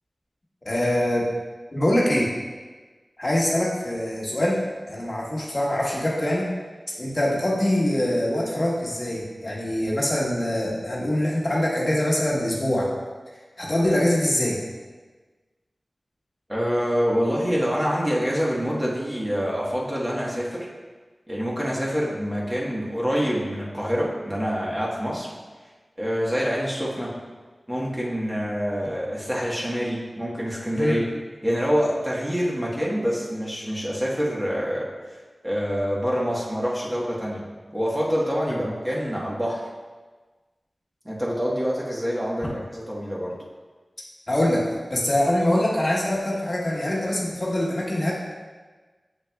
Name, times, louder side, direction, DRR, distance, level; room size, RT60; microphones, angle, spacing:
voice 1, 0.6-1.3 1.7-2.3 3.2-4.6 4.9-6.5 7.0-12.9 13.6-14.6 30.7-31.0 38.5-38.6 44.3-44.6 44.9-48.1, left 1 dB, 40° left, -4 dB, 1.2 m, -23 dB
voice 2, 16.5-20.7 21.3-25.3 26.0-27.1 27.7-31.1 31.4-34.9 35.4-37.4 37.7-39.6 41.0-43.4, equal, 15° right, -5 dB, 1.3 m, -26 dB
7.4 x 6.6 x 2.3 m, 1.3 s
wide cardioid pair, 70°, 0 cm